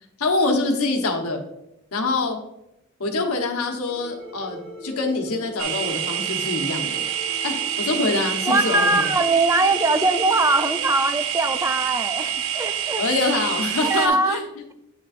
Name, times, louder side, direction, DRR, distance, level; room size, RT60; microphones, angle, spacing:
voice 1, 0.2-1.4 1.9-2.4 3.0-7.0 7.4-9.1 13.0-14.4, left 3 dB, 90° left, 3 dB, 1.1 m, -25 dB
sound 1, 3.9-11.0, equal, 50° right, 1.9 m, -41 dB
sound 2, 5.6-14.1, right 9 dB, 75° right, 0.7 m, -27 dB
voice 2, 8.4-13.1 13.8-14.4, right 2 dB, 15° right, 9 dB, 0.4 m, -21 dB
8.6 x 6.2 x 2.5 m, 0.85 s
head